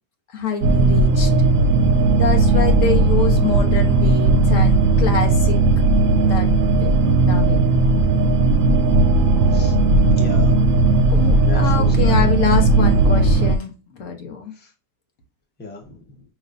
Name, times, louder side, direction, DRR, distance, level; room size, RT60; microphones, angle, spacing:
voice 1, 0.3-1.3 2.2-5.6 6.2-6.5 6.8-7.6 11.1-13.7 14.0-14.5, left 5 dB, 65° left, 3 dB, 1.2 m, -26 dB
sound 1, 0.6-13.6, right 2 dB, 70° right, 0.9 m, -16 dB
voice 2, 10.2-10.6 11.5-12.3 12.6-12.9 14.5-14.7 15.6-16.2, left 2 dB, 10° left, 0 dB, 0.9 m, -36 dB
5.2 x 3.1 x 2.5 m, 0.33 s
omnidirectional pair, 1.5 m